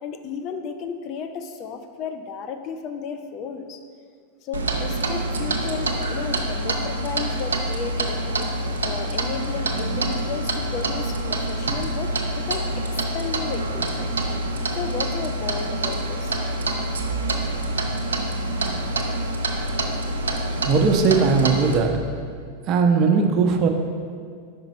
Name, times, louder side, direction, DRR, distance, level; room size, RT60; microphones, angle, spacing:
voice 1, 0.0-3.8 4.4-8.5 8.8-12.9 13.1-14.1 14.7-16.4, left 6 dB, 45° left, 7 dB, 0.5 m, -33 dB
Clock, 4.5-21.8, right 2 dB, 85° right, 0.5 m, -26 dB
voice 2, 20.6-22.0 22.7-23.7, right 4 dB, 45° right, 4 dB, 0.6 m, -19 dB
5.3 x 5.1 x 4.1 m, 2.1 s
hypercardioid pair, 95°, 0 cm